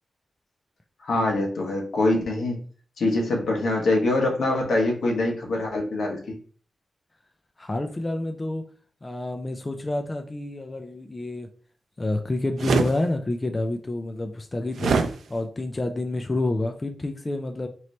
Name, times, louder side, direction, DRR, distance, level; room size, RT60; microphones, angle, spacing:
voice 1, 1.0-2.6 3.0-6.4, left 2 dB, 80° left, 0 dB, 1.2 m, -24 dB
voice 2, 7.6-8.6 9.0-11.5 12.0-17.7, left 2 dB, 25° left, 5 dB, 0.4 m, -28 dB
sound 1, 12.6-12.9 14.8-15.1, right 5 dB, 85° right, 0.4 m, -22 dB
3.1 x 3.1 x 4.0 m, 0.43 s
wide cardioid pair, 95°, 0 cm